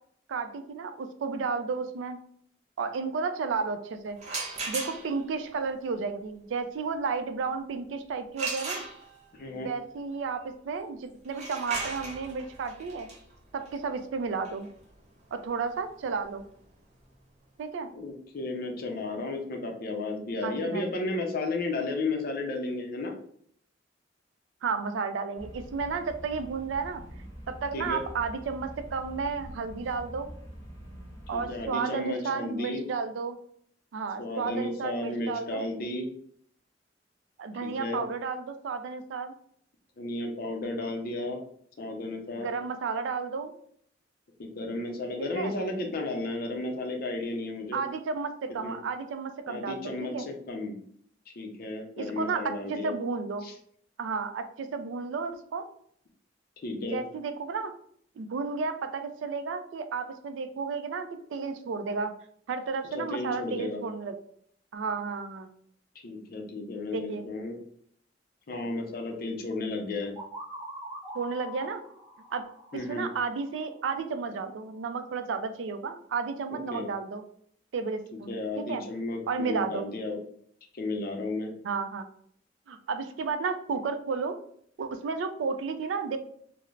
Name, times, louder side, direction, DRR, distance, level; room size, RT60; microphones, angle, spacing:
voice 1, 0.3-2.2 2.8-4.2 4.7-8.8 9.5-13.1 13.5-14.7 15.3-16.4 17.6-17.9 20.4-20.8 24.6-27.0 27.5-30.3 31.3-33.4 33.9-35.6 37.4-39.3 42.4-43.5 45.2-45.5 47.7-50.3 52.0-52.4 52.7-53.5 54.0-55.7 56.9-57.7 58.2-62.1 62.5-64.2 64.7-65.5 66.9-67.2 71.1-71.8 72.3-72.4 72.7-77.2 77.7-78.8 79.3-79.8 81.6-82.1 82.7-84.4 84.8-86.2, right 5 dB, 85° right, 8 dB, 0.3 m, -32 dB
sound 1, 4.2-5.3 8.4-9.4 11.2-16.9, right 3 dB, 40° right, 0.6 m, -38 dB
voice 2, 9.3-9.7 17.9-23.1 27.7-28.0 31.3-32.8 34.2-36.1 37.6-38.0 40.0-41.4 41.8-42.5 44.4-47.8 48.6-48.8 49.5-50.8 51.3-52.9 53.4-53.5 56.6-57.0 62.9-63.8 66.0-67.6 68.5-70.1 72.7-73.1 76.5-76.9 78.3-80.2 80.7-81.5, left 2 dB, 55° left, 4 dB, 0.5 m, -33 dB
sound 2, 25.4-31.7, equal, 15° left, 0.9 m, -45 dB
sound 3, 70.2-73.9, equal, 5° right, 1.0 m, -44 dB
2.4 x 2.0 x 3.1 m, 0.64 s
head